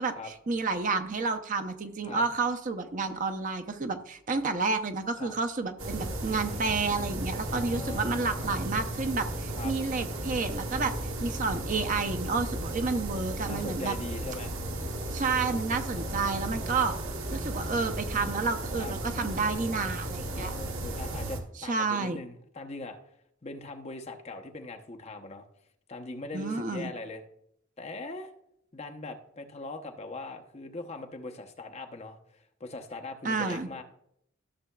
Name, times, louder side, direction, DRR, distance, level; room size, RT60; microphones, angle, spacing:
voice 1, 0.0-10.9 11.2-13.9 15.1-17.0 17.3-20.5 21.7-22.2 26.3-26.9 33.2-33.7, right 4 dB, 40° right, 8 dB, 0.6 m, -30 dB
sound 1, 5.8-21.4, right 1 dB, 85° right, 1.4 m, -35 dB
voice 2, 7.5-8.5 9.6-9.7 13.4-14.6 15.8-17.0 18.8-18.9 20.3-23.0 23.4-25.4 25.9-27.2 27.8-28.3 28.7-33.8, left 2 dB, 30° left, 4 dB, 0.8 m, -41 dB
14.0 x 6.7 x 2.3 m, 0.73 s
head